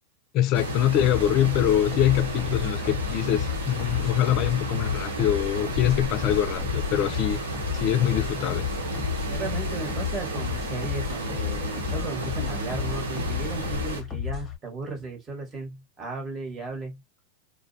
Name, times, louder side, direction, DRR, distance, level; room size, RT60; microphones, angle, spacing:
voice 1, 0.3-7.4 7.7-8.7, left 11 dB, 45° left, 0.5 m, -24 dB
sound 1, 0.5-14.0, right 2 dB, 80° right, 0.9 m, -32 dB
sound 2, 1.0-14.6, left 10 dB, 25° left, 0.9 m, -33 dB
voice 2, 9.3-17.2, right 3 dB, 20° right, 1.3 m, -36 dB
2.3 x 2.1 x 2.6 m
hypercardioid pair, 100°, 0 cm